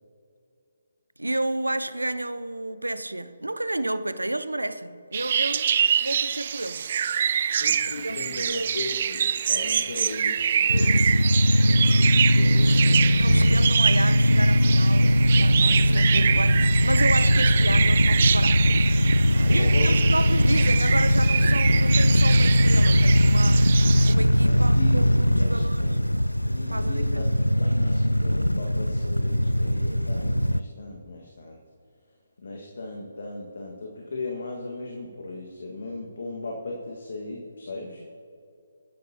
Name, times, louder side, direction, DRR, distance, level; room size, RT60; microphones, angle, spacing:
voice 1, 1.2-5.7 6.0-6.9 8.0-8.8 13.2-18.8 19.5-23.6 24.0-25.8 26.7-27.2, right 1 dB, 75° right, 0.7 m, -31 dB
sound 1, 5.1-24.1, right 8 dB, 40° right, 0.4 m, -26 dB
voice 2, 7.6-11.3 11.6-13.8 15.8-16.1 19.3-20.0 24.4-26.0 26.5-31.6 32.4-38.1, left 2 dB, 55° left, 1.6 m, -37 dB
sound 2, 10.7-30.6, equal, 85° left, 0.4 m, -20 dB
23.5 x 10.5 x 2.9 m
figure-of-eight pair, 140°, 0 cm